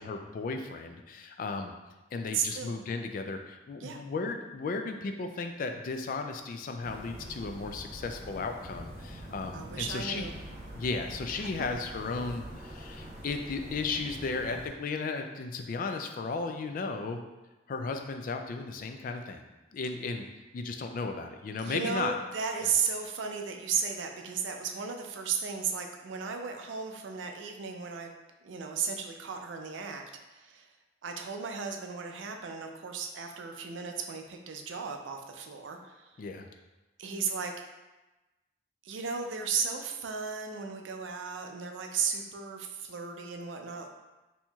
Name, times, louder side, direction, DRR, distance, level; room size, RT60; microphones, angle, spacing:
voice 1, 0.0-1.7 2.1-10.3 10.7-17.2 17.7-19.5 19.7-20.2 20.5-22.2 36.2-36.4, left 4 dB, 50° left, 5 dB, 0.3 m, -35 dB
voice 2, 2.3-2.8 3.8-4.0 9.5-10.3 11.4-11.5 21.6-28.1 28.4-30.0 30.3-30.7 31.0-36.2 37.0-37.5 38.8-43.9, right 6 dB, 90° right, 4 dB, 0.4 m, -35 dB
sound 1, 6.8-14.7, right 1 dB, 40° right, 0.9 m, -45 dB
4.2 x 2.8 x 2.3 m, 1.1 s
head